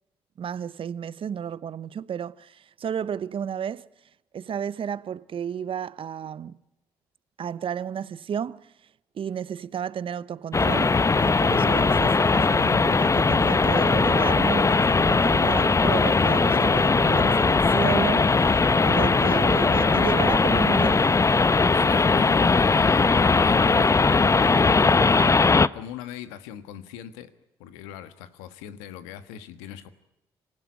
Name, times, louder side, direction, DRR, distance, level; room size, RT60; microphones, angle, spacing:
voice 1, 0.4-3.9 4.3-6.6 7.4-8.7 9.1-10.9 11.2-21.2, right 8 dB, 50° right, 0.8 m, -32 dB
sound 1, 10.5-25.7, left 4 dB, 25° left, 0.8 m, -20 dB
voice 2, 21.7-25.5 25.7-27.3 27.6-29.9, left 10 dB, 90° left, 1.5 m, -41 dB
25.5 x 16.5 x 9.6 m
supercardioid pair, 55°, 11 cm